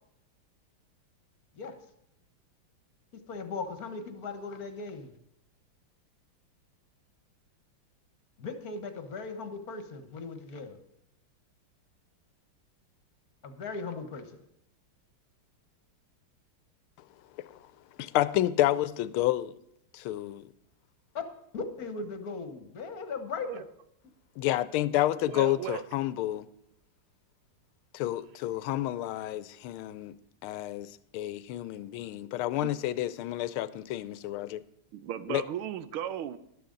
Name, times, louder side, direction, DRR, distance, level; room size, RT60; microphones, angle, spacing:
voice 1, 3.3-5.1 8.4-10.8 13.4-14.4 21.1-21.2 21.5-23.6, left 4 dB, 50° left, 1.5 m, -38 dB
voice 2, 18.0-19.5 19.9-20.4 24.4-26.5 27.9-30.1 30.4-34.6 35.3-35.4, left 14 dB, 85° left, 1.5 m, -30 dB
voice 3, 25.3-25.8 32.6-32.7 34.9-36.4, right 10 dB, 85° right, 1.6 m, -36 dB
12.5 x 12.0 x 3.8 m
omnidirectional pair, 2.3 m